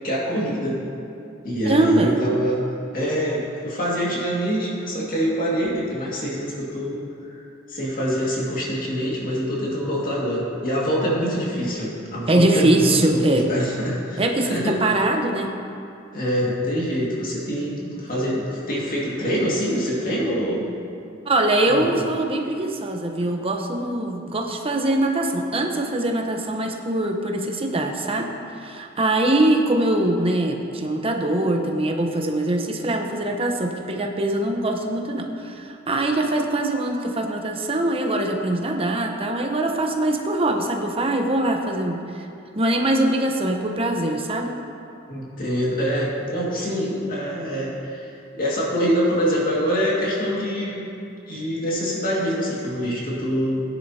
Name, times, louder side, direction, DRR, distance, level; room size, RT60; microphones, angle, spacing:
voice 1, 0.0-0.8 1.4-2.6 2.9-7.4 7.7-14.8 16.1-20.7 21.7-21.9 45.1-48.1 48.3-50.9 51.3-53.6, equal, 45° left, -5 dB, 2.1 m, -25 dB
voice 2, 1.6-2.2 12.3-13.5 14.2-15.5 21.3-28.3 28.6-42.3 42.5-44.6, right 1 dB, 30° right, 2 dB, 0.9 m, -22 dB
16.5 x 10.0 x 2.9 m, 2.6 s
head